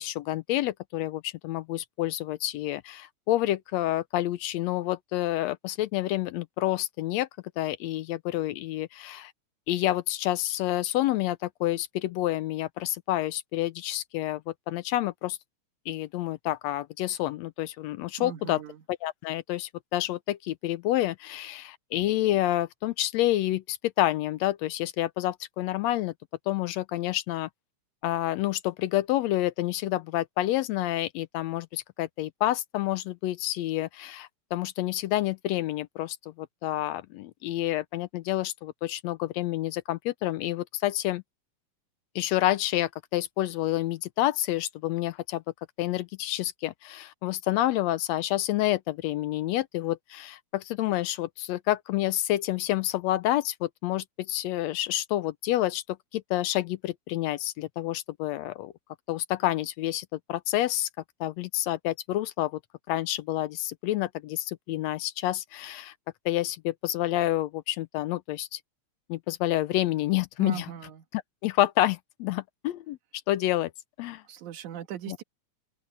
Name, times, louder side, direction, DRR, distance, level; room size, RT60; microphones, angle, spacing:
voice 1, 0.0-7.3 7.6-9.3 9.7-15.4 15.9-18.6 18.9-26.1 26.5-27.5 28.0-41.2 42.1-45.4 45.8-58.7 59.1-60.9 61.2-62.6 62.9-65.9 66.2-68.6 69.1-70.7 71.1-73.0 73.3-73.7 74.0-74.2 75.1-75.2, left 15 dB, 80° left, 1.7 m, -28 dB
voice 2, 18.2-18.8 70.4-71.0 74.3-75.2, right 10 dB, 85° right, 2.9 m, -39 dB
open air
omnidirectional pair, 3.3 m